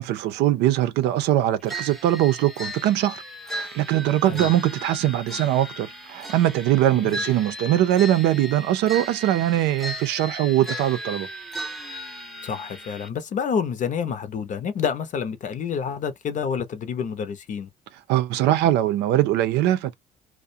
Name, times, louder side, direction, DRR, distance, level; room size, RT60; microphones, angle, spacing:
voice 1, 0.0-3.2 3.5-11.3 18.1-19.9, right 13 dB, 85° right, 0.5 m, -21 dB
sound 1, 1.7-13.1, right 1 dB, ahead, 0.6 m, -36 dB
voice 2, 12.4-17.7, left 7 dB, 50° left, 0.7 m, -28 dB
2.4 x 2.1 x 2.6 m
cardioid pair, 110°, 17 cm